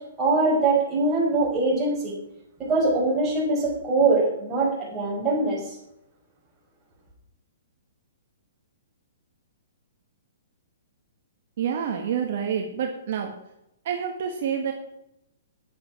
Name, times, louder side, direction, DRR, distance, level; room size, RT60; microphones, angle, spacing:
voice 1, 0.2-2.1 2.6-5.8, right 3 dB, 20° right, -4 dB, 5.6 m, -23 dB
voice 2, 11.6-13.3 13.9-14.7, right 8 dB, 55° right, 3 dB, 1.8 m, -28 dB
10.0 x 8.7 x 6.1 m, 0.82 s
hypercardioid pair, 145°, 0 cm